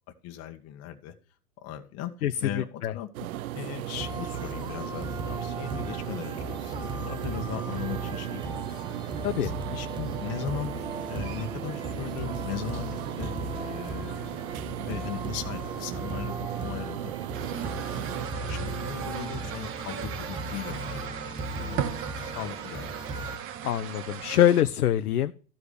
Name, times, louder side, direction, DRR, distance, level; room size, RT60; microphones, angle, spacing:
voice 1, 0.2-1.1 1.6-2.1 2.4-3.3 3.5-9.0 9.4-17.1 17.5-17.7 18.3-21.8 22.2-23.0, left 10 dB, 35° left, 1.4 m, -38 dB
voice 2, 2.2-2.9 9.2-9.5 23.6-25.3, left 11 dB, 75° left, 0.7 m, -24 dB
sound 1, 3.1-18.3, right 14 dB, 65° right, 0.5 m, -37 dB
sound 2, 4.0-23.4, right 2 dB, 10° right, 0.9 m, -37 dB
sound 3, 17.3-24.6, right 9 dB, 30° right, 1.3 m, -37 dB
13.5 x 4.8 x 6.6 m
hypercardioid pair, 105°, 45 cm